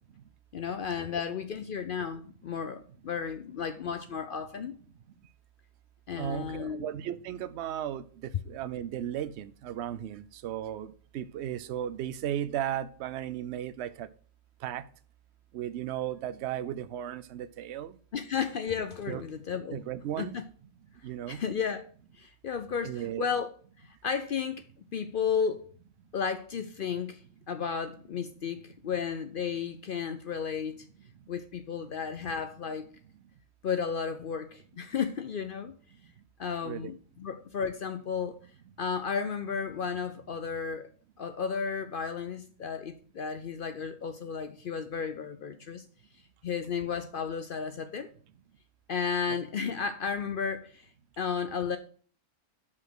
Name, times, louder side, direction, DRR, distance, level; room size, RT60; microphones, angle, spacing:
voice 1, 0.5-4.7 6.1-6.9 18.1-19.8 20.2-20.4 21.3-21.9 22.1-23.5 23.8-24.7 24.9-25.7 26.1-27.2 27.5-30.9 31.3-32.9 33.6-35.7 36.4-38.4 38.8-40.9 41.2-45.9 46.4-48.1 48.9-50.9 51.2-51.8, left 6 dB, 60° left, 0.6 m, -33 dB
voice 2, 6.2-14.1 14.6-14.8 15.5-18.0 19.1-19.2 19.7-20.4 21.0-21.4 22.8-23.2 36.6-36.9 49.3-49.4, right 11 dB, 65° right, 0.8 m, -35 dB
5.6 x 5.0 x 6.2 m
omnidirectional pair, 1.4 m